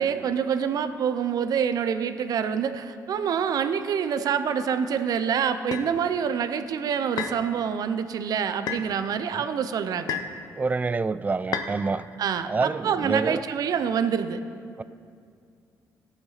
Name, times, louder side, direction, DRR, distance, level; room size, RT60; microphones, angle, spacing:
voice 1, 0.0-10.2 12.2-14.4, right 7 dB, 65° right, 10 dB, 0.6 m, -26 dB
sound 1, 5.7-5.9 7.2-7.4 8.7-8.9 10.1-10.4 11.5-11.7, left 7 dB, 75° left, 0.8 m, -30 dB
voice 2, 10.5-12.1 12.4-13.4 14.8-14.9, right 4 dB, 25° right, 16 dB, 0.3 m, -27 dB
17.5 x 5.9 x 4.0 m, 2.3 s
cardioid pair, 70°, 7 cm